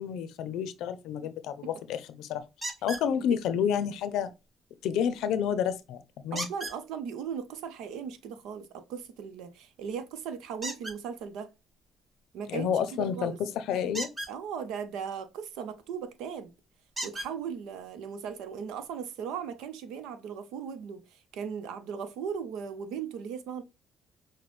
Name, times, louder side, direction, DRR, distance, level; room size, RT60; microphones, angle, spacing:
voice 1, 0.0-2.4 2.8-4.3 4.8-6.5 12.5-14.1, left 8 dB, 80° left, 0.5 m, -30 dB
sound 1, 2.6-3.1 6.4-6.8 10.6-11.0 13.9-14.3 16.0-16.1 17.0-17.3 18.3-18.4 18.9-19.0, right 1 dB, 25° right, 2.6 m, -36 dB
voice 2, 6.3-11.5 12.3-13.4 14.3-16.5 17.0-23.6, right 7 dB, 80° right, 0.7 m, -38 dB
6.0 x 2.1 x 3.2 m
cardioid pair, 85°, 0 cm